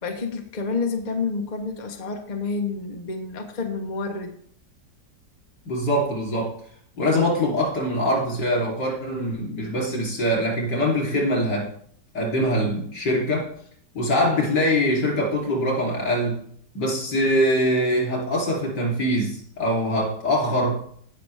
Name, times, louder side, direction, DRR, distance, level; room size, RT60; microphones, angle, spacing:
voice 1, 0.0-4.3, left 4 dB, 30° left, 3 dB, 1.1 m, -29 dB
voice 2, 5.7-6.6 7.0-11.7 12.1-13.5 13.9-16.4 16.8-20.8, equal, 85° left, -2 dB, 3.8 m, -23 dB
16.5 x 5.9 x 3.4 m, 0.62 s
omnidirectional pair, 1.8 m